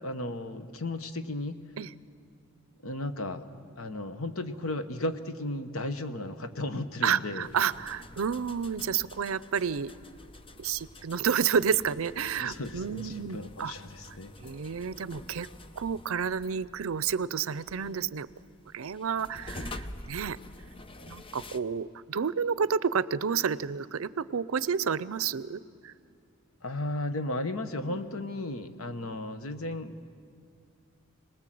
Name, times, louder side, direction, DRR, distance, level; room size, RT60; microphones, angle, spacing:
voice 1, 0.0-1.6 2.8-3.4 3.8-7.5 12.4-14.3 26.6-30.0, left 2 dB, 85° left, 9 dB, 1.2 m, -35 dB
voice 2, 7.0-9.9 10.6-13.7 14.1-15.5 15.8-18.3 18.7-20.4 21.0-25.9 27.9-28.0, right 7 dB, 80° right, 17 dB, 0.5 m, -30 dB
sound 1, 7.4-21.6, left 2 dB, 25° left, 0.7 m, -47 dB
26.5 x 19.5 x 7.7 m, 2.4 s
head